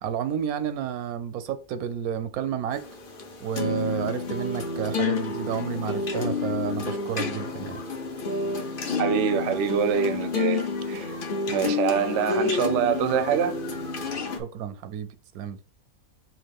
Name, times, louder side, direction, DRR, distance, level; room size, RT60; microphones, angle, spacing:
voice 1, 0.0-2.8 3.4-7.8 14.4-15.1 15.3-15.6, right 9 dB, 85° right, 1.1 m, -31 dB
sound 1, 2.7-14.4, left 4 dB, 45° left, 0.9 m, -29 dB
voice 2, 9.0-11.1 11.5-13.6, right 8 dB, 65° right, 0.8 m, -25 dB
5.9 x 2.5 x 3.5 m
omnidirectional pair, 1.5 m